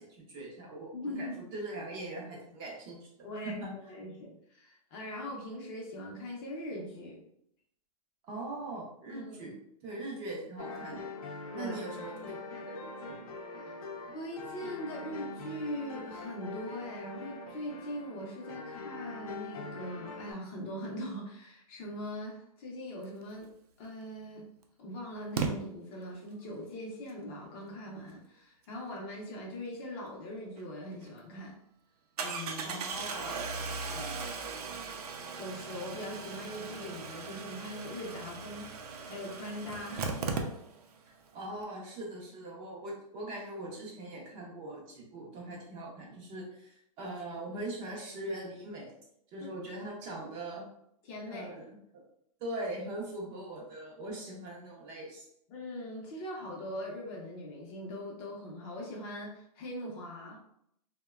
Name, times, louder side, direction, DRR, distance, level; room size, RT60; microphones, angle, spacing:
voice 1, 0.0-3.1 3.4-3.7 8.3-9.5 9.8-11.1 11.6-13.2 32.6-33.8 41.3-48.9 49.3-50.7 51.3-52.0 52.4-55.2, right 1 dB, 25° right, -3 dB, 0.5 m, -41 dB
voice 2, 0.9-1.3 3.2-3.6 3.9-7.3 9.1-9.6 11.5-11.8 13.6-13.7 14.1-23.5 23.8-24.5 24.8-31.6 32.2-32.8 33.6-34.3 35.3-38.7 39.0-40.1 49.4-49.5 51.0-51.5 55.5-60.4, equal, 30° left, -2 dB, 0.6 m, -41 dB
sound 1, 10.6-20.3, left 3 dB, 65° left, 0.6 m, -43 dB
Engine starting, 23.9-24.0 25.4-25.5 30.6-30.7 31.0-31.1 32.2-41.0 41.3-41.4 41.6-41.7, right 4 dB, 80° right, 0.5 m, -38 dB
2.8 x 2.1 x 2.3 m, 0.74 s
hypercardioid pair, 150°, 19 cm